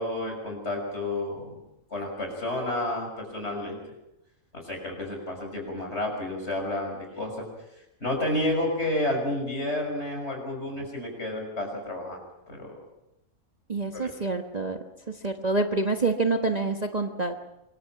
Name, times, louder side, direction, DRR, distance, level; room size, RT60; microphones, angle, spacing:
voice 1, 0.0-1.6 1.9-3.9 4.5-7.5 8.0-12.2 12.5-12.8 13.9-14.1, left 1 dB, 50° left, 2 dB, 6.4 m, -30 dB
voice 2, 13.7-14.8 15.2-17.4, right 3 dB, 30° right, 3 dB, 1.3 m, -27 dB
25.5 x 22.5 x 5.9 m, 0.88 s
omnidirectional pair, 1.5 m